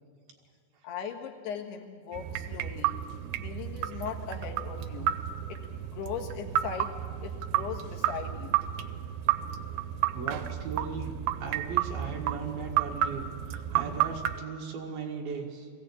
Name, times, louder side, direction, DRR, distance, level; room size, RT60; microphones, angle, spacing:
voice 1, 0.8-3.0 3.4-5.1 5.5-6.9 7.2-8.6, left 7 dB, 75° left, 1 dB, 3.6 m, -39 dB
sound 1, 2.1-14.4, right 12 dB, 90° right, 2.9 m, -32 dB
voice 2, 10.1-11.1 11.4-15.7, right 5 dB, 65° right, 1 dB, 3.5 m, -37 dB
21.0 x 16.0 x 8.5 m, 2.1 s
omnidirectional pair, 4.8 m